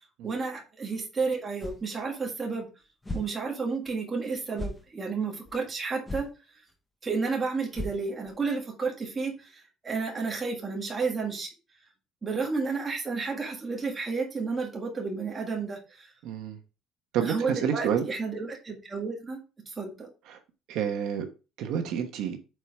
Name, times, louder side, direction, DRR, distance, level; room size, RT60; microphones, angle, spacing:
voice 1, 0.2-2.7 3.1-6.3 7.0-9.3 9.8-11.5 12.2-15.8 17.2-19.4 19.8-20.1, right 4 dB, 20° right, 0 dB, 1.6 m, -31 dB
sound 1, 1.6-1.9 2.3-2.4 3.0-3.3 3.9-4.0 4.5-4.8 5.4-5.5 6.1-6.3 6.7-6.8 7.1-7.2 7.7-8.3, left 1 dB, 10° left, 1.1 m, -36 dB
voice 2, 16.2-16.6 17.1-18.1 20.3-20.4 20.7-21.3 21.6-22.4, right 8 dB, 65° right, 5 dB, 1.1 m, -29 dB
7.8 x 4.7 x 3.5 m, 0.31 s
cardioid pair, 165°, 0 cm